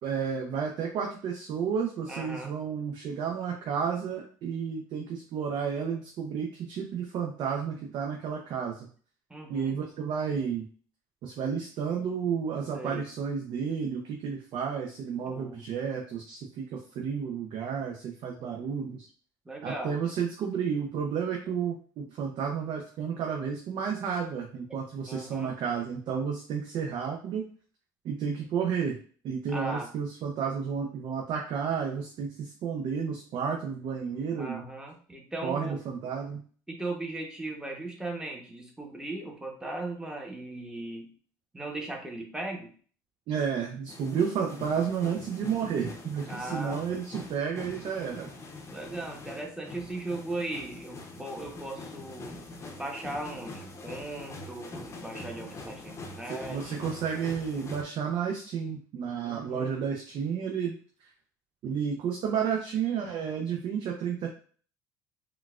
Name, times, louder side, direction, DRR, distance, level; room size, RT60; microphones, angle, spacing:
voice 1, 0.0-8.9 9.5-10.7 11.2-19.1 19.6-27.4 28.0-29.0 29.2-34.6 35.4-36.4 43.3-48.3 56.3-60.7 61.6-64.3, right 7 dB, 60° right, 0 dB, 0.6 m, -31 dB
voice 2, 2.1-2.5 9.3-9.8 12.7-13.1 15.3-15.6 19.4-20.0 25.1-25.5 29.5-29.9 34.4-35.8 36.7-41.1 41.5-42.7 46.3-46.8 48.7-52.4 52.8-56.8 59.2-59.7, right 2 dB, 10° right, 1 dB, 0.9 m, -38 dB
sound 1, 43.9-57.8, left 2 dB, 30° left, 0.7 m, -44 dB
3.8 x 2.3 x 2.4 m, 0.43 s
supercardioid pair, 85°, 9 cm